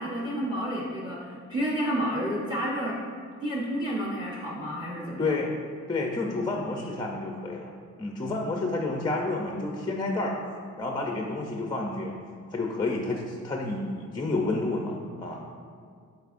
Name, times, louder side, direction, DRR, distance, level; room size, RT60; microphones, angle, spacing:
voice 1, 0.0-3.0 3.4-5.3, equal, 15° right, -4 dB, 0.8 m, -30 dB
voice 2, 5.2-5.5 5.9-7.7 8.0-10.4 10.8-12.1 12.5-15.5, left 2 dB, 15° left, 1 dB, 0.4 m, -30 dB
11.5 x 4.3 x 2.5 m, 2.2 s
cardioid pair, 165°, 30 cm